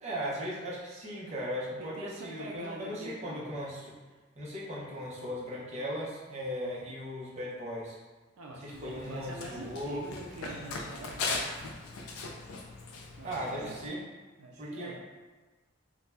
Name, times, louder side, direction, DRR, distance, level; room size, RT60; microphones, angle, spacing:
voice 1, 0.0-3.9 4.4-8.0 8.5-10.0 13.2-14.0 14.6-15.0, equal, 35° right, -7 dB, 0.6 m, -37 dB
voice 2, 1.8-3.5 8.4-11.3 13.2-13.9 14.4-15.0, right 2 dB, 85° right, 0 dB, 0.4 m, -44 dB
Run, 8.7-13.9, left 3 dB, 85° left, 0.4 m, -39 dB
2.5 x 2.1 x 3.2 m, 1.3 s
head